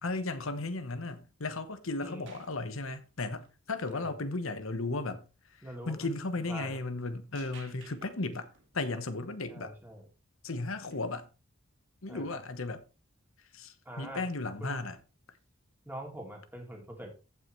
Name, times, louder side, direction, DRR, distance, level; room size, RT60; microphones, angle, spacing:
voice 1, 0.0-9.8 10.4-11.3 12.0-12.8 13.5-15.0, left 3 dB, 70° left, 1.1 m, -35 dB
sound 1, 1.7-1.8 2.2-4.1 4.5-4.7 7.3-9.3 10.9-11.0 15.4-15.5, right 5 dB, 60° right, 2.3 m, -56 dB
voice 2, 5.6-6.1 6.4-6.8 9.5-10.1 12.1-12.4 13.8-14.2 14.6-14.8 15.9-17.1, right 1 dB, 10° right, 2.5 m, -43 dB
15.0 x 5.7 x 3.2 m
head